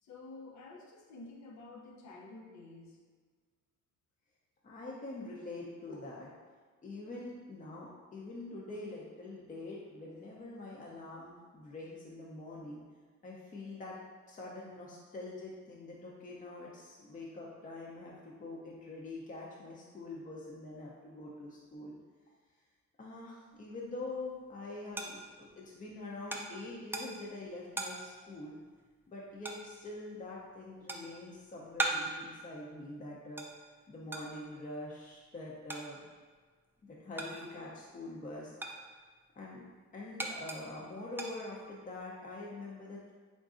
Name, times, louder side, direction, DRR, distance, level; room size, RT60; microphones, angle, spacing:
voice 1, 0.0-3.0, left 3 dB, 65° left, 0 dB, 0.7 m, -50 dB
voice 2, 4.6-6.3 6.8-12.8 13.2-14.0 14.3-21.9 23.0-28.6 29.1-33.5 33.9-36.1 36.8-38.5 39.4-39.6 39.9-43.1, left 2 dB, 25° left, -4 dB, 0.6 m, -45 dB
sound 1, 24.0-37.8 38.1-42.0, right 2 dB, 10° right, 0.4 m, -42 dB
3.8 x 3.7 x 2.5 m, 1.5 s
cardioid pair, 90°, 30 cm